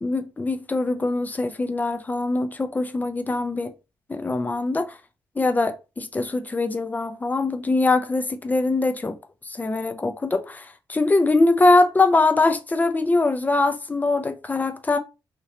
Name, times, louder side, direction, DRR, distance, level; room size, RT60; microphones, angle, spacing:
voice 1, 0.0-3.7 4.1-4.9 5.4-9.2 9.5-15.0, left 2 dB, 20° left, 0.5 m, -22 dB
2.9 x 2.7 x 4.0 m
cardioid pair, 90°, 8 cm